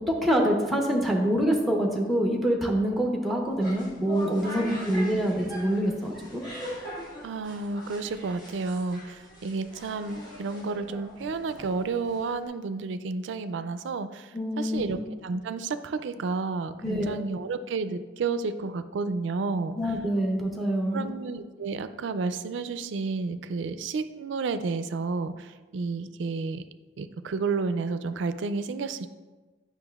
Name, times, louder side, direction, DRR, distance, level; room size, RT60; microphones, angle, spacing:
voice 1, 0.0-6.4 14.3-15.0 16.8-17.2 19.8-21.1, equal, ahead, 0 dB, 0.8 m, -26 dB
sound 1, 3.4-12.5, left 1 dB, 45° left, 1.7 m, -42 dB
voice 2, 4.6-5.0 7.2-15.0 15.2-19.8 20.9-26.6 27.0-29.1, right 4 dB, 70° right, 11 dB, 0.4 m, -31 dB
8.7 x 5.7 x 2.4 m, 1.3 s
head